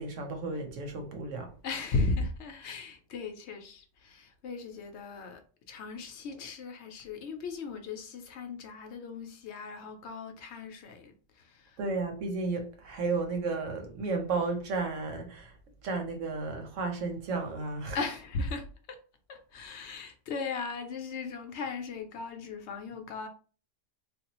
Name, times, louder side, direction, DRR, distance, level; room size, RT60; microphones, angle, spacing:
voice 1, 0.0-1.5 11.8-15.5 15.8-18.0, right 3 dB, 90° right, 1.1 m, -33 dB
voice 2, 1.6-5.4 5.7-11.8 17.9-19.0 19.3-23.3, left 3 dB, 70° left, 0.8 m, -37 dB
3.4 x 2.3 x 2.9 m
omnidirectional pair, 1.3 m